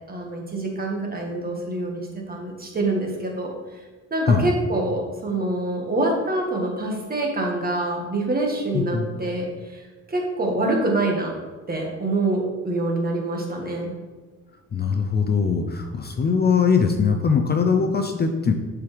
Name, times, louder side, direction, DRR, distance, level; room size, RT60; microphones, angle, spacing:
voice 1, 0.1-3.8 4.1-11.4 11.7-13.9, right 2 dB, 30° right, 1 dB, 1.5 m, -26 dB
voice 2, 8.7-9.1 14.7-18.5, left 5 dB, 35° left, 4 dB, 0.6 m, -21 dB
6.8 x 4.8 x 3.3 m, 1.3 s
cardioid pair, 90°, 30 cm